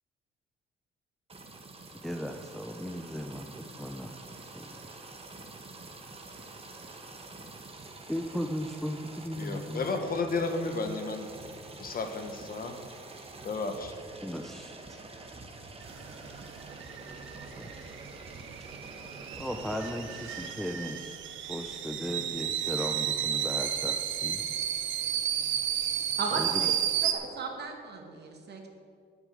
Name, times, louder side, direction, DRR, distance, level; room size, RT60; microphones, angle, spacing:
sound 1, 1.3-20.5, right 3 dB, 30° right, 1.5 m, -47 dB
voice 1, 2.0-3.5 3.8-4.2 4.5-4.7 8.1-9.8 14.2-14.7 17.5-17.9 18.6-18.7 19.4-21.2 21.5-24.4 26.4-26.6, equal, ahead, 3 dB, 0.7 m, -36 dB
voice 2, 9.4-11.3 11.8-12.8 13.4-13.9, left 3 dB, 45° left, 5 dB, 1.6 m, -32 dB
sound 2, 15.8-27.1, right 9 dB, 80° right, 1.0 m, -32 dB
voice 3, 26.2-26.7 27.0-28.7, right 4 dB, 55° right, 2 dB, 2.1 m, -36 dB
9.9 x 8.3 x 7.8 m, 2.1 s
cardioid pair, 90°, 20 cm